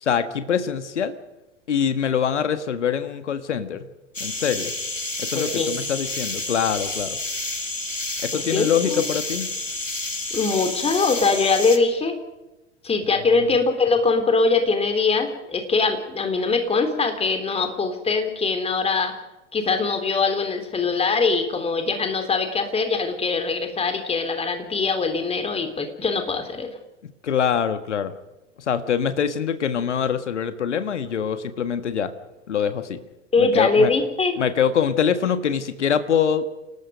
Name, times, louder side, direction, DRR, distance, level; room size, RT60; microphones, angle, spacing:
voice 1, 0.0-1.2 1.7-3.9 4.2-4.7 5.2-7.2 8.2-9.5 27.2-28.1 28.6-32.1 32.5-33.0 33.4-33.9 34.4-36.5, left 8 dB, 70° left, 10 dB, 1.8 m, -24 dB
sound 1, 4.1-11.8, left 2 dB, 90° left, 2.2 m, -30 dB
voice 2, 5.3-5.7 8.3-9.0 10.3-12.2 12.8-19.1 19.5-26.7 33.3-34.4, left 4 dB, 15° left, 6 dB, 3.8 m, -22 dB
29.0 x 19.5 x 5.2 m, 1.0 s
figure-of-eight pair, 90°, 37 cm